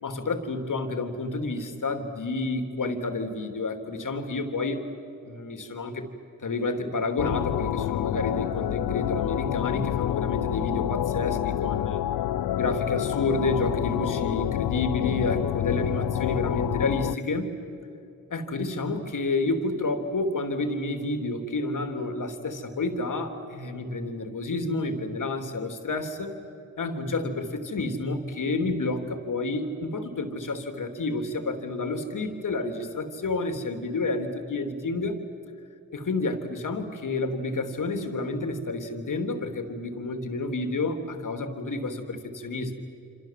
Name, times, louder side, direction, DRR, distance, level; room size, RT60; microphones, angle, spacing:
voice 1, 0.0-4.8 5.2-6.1 6.4-12.0 12.6-17.5 18.3-26.3 26.8-35.2 35.9-42.7, left 2 dB, 60° left, 6 dB, 3.4 m, -30 dB
sound 1, 7.2-17.2, left 13 dB, 75° left, 0.7 m, -28 dB
28.0 x 26.0 x 7.7 m, 2.8 s
supercardioid pair, 45°, 35 cm